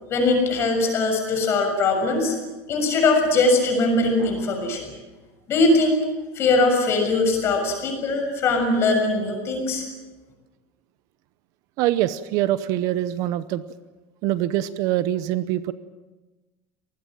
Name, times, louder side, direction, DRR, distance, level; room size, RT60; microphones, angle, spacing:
voice 1, 0.1-2.3 2.7-4.9 5.5-6.0 6.3-9.8, left 2 dB, 30° left, 4 dB, 6.8 m, -21 dB
voice 2, 11.8-13.6 14.2-15.7, right 13 dB, 45° right, 14 dB, 0.8 m, -24 dB
26.0 x 20.0 x 7.5 m, 1.2 s
cardioid pair, 175°, 8 cm